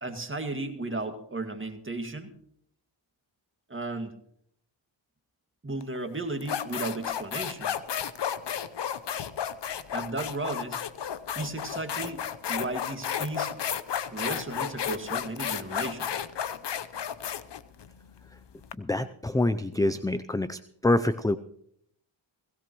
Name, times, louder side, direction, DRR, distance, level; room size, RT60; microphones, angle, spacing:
voice 1, 0.0-2.3 3.7-4.2 5.6-7.8 9.9-10.8 11.4-12.2 12.5-13.5 14.1-16.1, right 2 dB, 25° right, 5 dB, 2.1 m, -34 dB
sound 1, 5.8-6.0 6.4-18.7, left 9 dB, 55° left, 0.9 m, -32 dB
voice 2, 18.8-21.4, left 2 dB, 10° left, 13 dB, 0.5 m, -26 dB
17.0 x 17.0 x 3.1 m, 0.70 s
cardioid pair, 55°, 50 cm